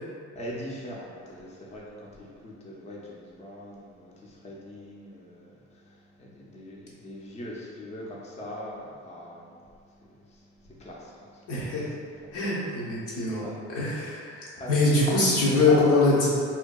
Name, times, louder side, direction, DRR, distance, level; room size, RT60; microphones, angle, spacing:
voice 1, 0.4-5.5 5.8-9.6 10.1-11.5 12.2-12.3 13.4-13.6 14.6-14.7 15.7-15.8, equal, 25° left, -4 dB, 0.4 m, -41 dB
voice 2, 11.5-11.9 12.3-16.3, left 2 dB, 90° left, -7 dB, 0.7 m, -23 dB
2.6 x 2.2 x 2.2 m, 2.2 s
cardioid pair, 90°, 30 cm